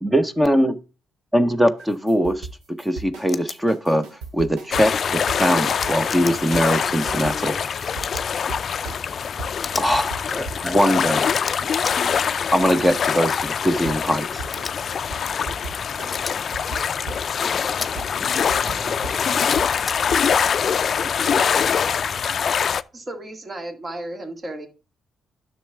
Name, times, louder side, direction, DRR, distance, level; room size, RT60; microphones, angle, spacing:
voice 1, 0.0-0.7 1.3-2.5 2.8-4.1 4.3-7.5 9.8-10.2 10.7-11.2 12.5-14.4, equal, 10° right, 0.9 m, -21 dB
sound 1, 1.8-10.9 13.8-20.5, right 3 dB, 90° right, 2.1 m, -37 dB
sound 2, 3.3-3.6 5.6-6.3 8.0-8.3 9.6-9.9 11.3-12.0 13.3-13.5 14.5-14.7 16.1-16.3 17.6-17.9 19.4-20.0, left 5 dB, 35° left, 0.9 m, -33 dB
sound 3, 4.7-22.8, left 7 dB, 50° left, 0.4 m, -24 dB
voice 2, 10.3-11.2 18.3-20.0 21.0-21.4, left 1 dB, 10° left, 2.6 m, -36 dB
voice 3, 22.9-24.7, right 1 dB, 35° right, 2.0 m, -34 dB
10.0 x 6.6 x 3.5 m
cardioid pair, 90°, 0 cm